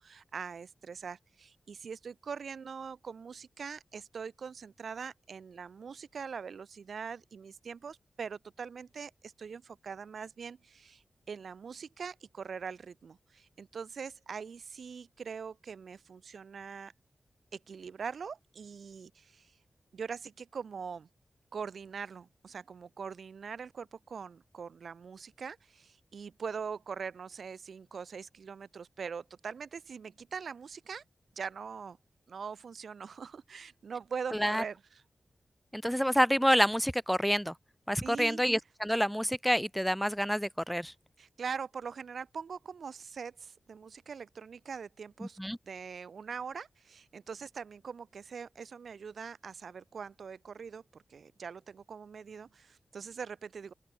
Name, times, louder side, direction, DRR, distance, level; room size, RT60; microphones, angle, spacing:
voice 1, 0.0-16.9 17.5-19.5 19.9-21.1 21.5-31.0 31.4-32.0 32.3-34.8 38.0-38.4 41.2-45.4 45.6-53.7, right 6 dB, 80° right, 7.9 m, -42 dB
voice 2, 35.7-37.5 37.9-40.9 45.4-45.6, equal, ahead, 1.7 m, -28 dB
open air
wide cardioid pair, 80°, 0 cm